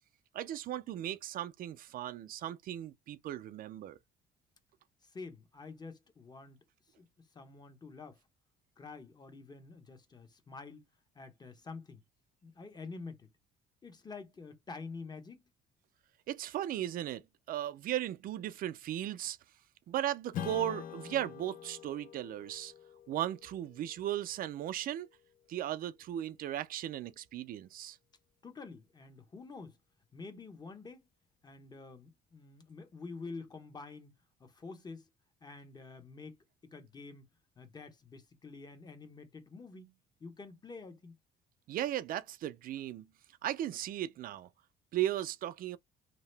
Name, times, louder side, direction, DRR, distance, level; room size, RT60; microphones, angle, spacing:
voice 1, 0.3-4.0 16.3-19.4 19.9-22.7 23.1-25.1 25.5-28.0 41.7-43.1 43.4-44.5 44.9-45.8, right 12 dB, 55° right, 0.4 m, -36 dB
voice 2, 5.0-6.6 6.9-8.2 8.8-10.8 11.1-12.0 12.4-13.3 13.8-15.4 28.4-29.8 30.1-31.1 31.4-35.1 35.4-37.3 37.6-41.2, left 4 dB, 25° left, 0.9 m, -48 dB
Strum, 20.3-25.3, left 10 dB, 55° left, 0.4 m, -46 dB
2.8 x 2.0 x 3.2 m
cardioid pair, 110°, 17 cm